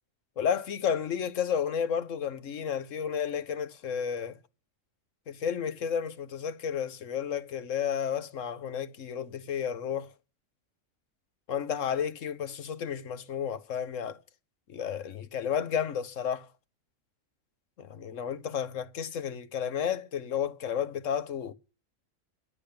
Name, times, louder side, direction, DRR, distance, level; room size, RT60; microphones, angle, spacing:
voice 1, 0.4-4.4 5.3-10.1 11.5-14.2 14.7-16.5 17.8-21.5, left 8 dB, 70° left, 1.3 m, -32 dB
11.5 x 7.5 x 8.6 m
omnidirectional pair, 1.4 m